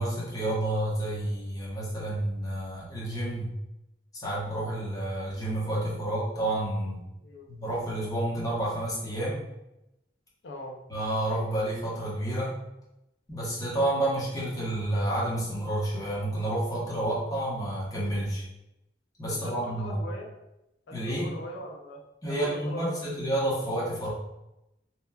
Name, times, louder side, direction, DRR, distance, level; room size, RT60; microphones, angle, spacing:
voice 1, 0.0-3.5 4.2-7.0 7.5-9.5 10.9-12.5 13.3-18.4 19.2-20.0 20.9-21.3 22.2-24.1, right 1 dB, 20° left, -7 dB, 0.8 m, -30 dB
voice 2, 10.4-10.8 19.3-20.3 20.9-22.0 22.3-23.1, equal, 90° left, 1 dB, 0.4 m, -41 dB
2.8 x 2.2 x 2.3 m, 0.91 s
head